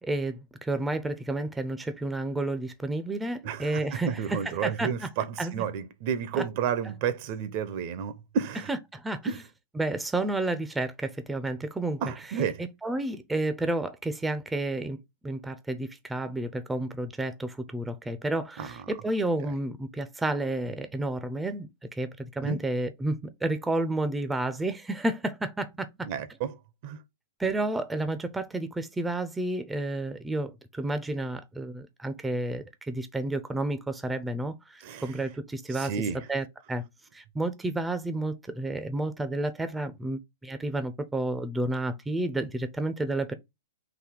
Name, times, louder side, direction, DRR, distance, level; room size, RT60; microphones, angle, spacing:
voice 1, 0.0-5.1 5.4-5.6 6.3-6.4 8.7-9.3 9.7-12.4 12.8-15.0 15.2-26.1 27.4-35.9 36.3-36.8 37.1-43.3, right 2 dB, 10° right, 0.6 m, -31 dB
voice 2, 3.4-8.7 9.2-9.4 12.0-12.6 18.6-18.7 22.4-22.6 26.0-26.5 26.8-27.0 34.8-35.1 35.7-36.2, right 7 dB, 50° right, 0.7 m, -31 dB
4.0 x 2.7 x 4.6 m
hypercardioid pair, 125°, 0 cm